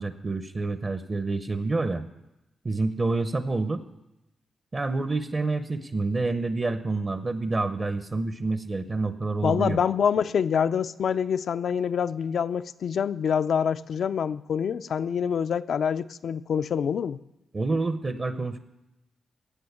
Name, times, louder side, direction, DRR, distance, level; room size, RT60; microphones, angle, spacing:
voice 1, 0.0-2.0 2.6-3.8 4.7-9.8 17.5-18.6, right 3 dB, 30° right, 10 dB, 0.7 m, -28 dB
voice 2, 9.4-17.2, left 7 dB, 70° left, 12 dB, 0.4 m, -26 dB
16.5 x 6.2 x 9.4 m, 0.93 s
cardioid pair, 105°, 0 cm